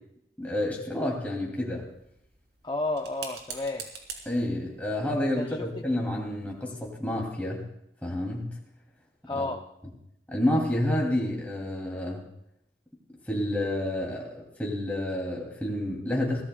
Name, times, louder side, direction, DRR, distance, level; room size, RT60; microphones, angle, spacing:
voice 1, 0.4-1.9 4.3-7.7 8.0-8.5 9.3-9.5 10.3-12.3 13.3-16.4, left 1 dB, 10° left, -2 dB, 2.4 m, -29 dB
sound 1, 1.8-7.0, right 6 dB, 80° right, 2.8 m, -46 dB
voice 2, 2.6-3.9 5.4-5.9 9.3-9.6, left 2 dB, 25° left, 3 dB, 0.5 m, -32 dB
22.5 x 17.0 x 2.2 m, 0.77 s
head